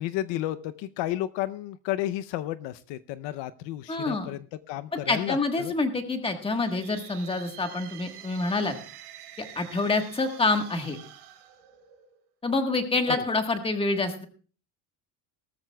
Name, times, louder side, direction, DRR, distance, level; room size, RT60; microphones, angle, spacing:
voice 1, 0.0-5.7 13.1-13.2, left 14 dB, 70° left, 13 dB, 0.7 m, -32 dB
voice 2, 3.9-4.3 5.1-8.8 9.4-11.0 12.4-14.3, left 3 dB, 10° left, 6 dB, 1.4 m, -27 dB
sound 1, 6.3-12.3, right 11 dB, 60° right, 3.5 m, -47 dB
19.0 x 13.5 x 2.3 m, 0.38 s
cardioid pair, 160°, 44 cm